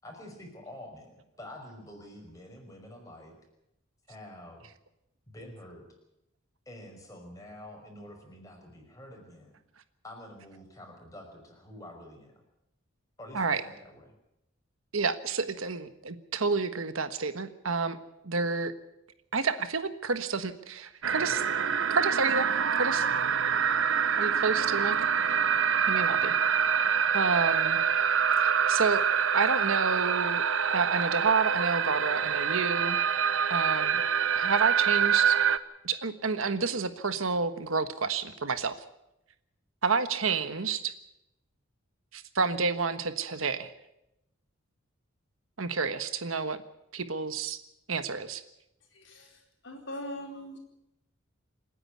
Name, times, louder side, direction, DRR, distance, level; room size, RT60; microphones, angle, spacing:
voice 1, 0.0-3.3 4.1-4.7 5.3-5.8 6.7-9.6 10.0-12.4 13.2-14.1, left 1 dB, 15° left, 1 dB, 5.5 m, -47 dB
voice 2, 14.9-18.0 18.2-18.7 19.3-21.4 21.9-23.1 24.2-25.0 25.9-26.3 26.8-27.8 28.4-29.0 29.3-30.4 30.7-33.0 33.5-34.0 34.3-35.4 35.8-38.8 39.8-40.9 42.1-43.7 45.6-46.6 46.9-47.6 47.9-48.4, right 4 dB, 85° right, 10 dB, 1.4 m, -29 dB
sound 1, 21.0-35.6, right 7 dB, 70° right, 0.9 m, -26 dB
voice 3, 48.9-49.3 49.6-50.6, equal, 60° left, 2 dB, 4.5 m, -40 dB
27.5 x 10.0 x 9.5 m, 0.87 s
head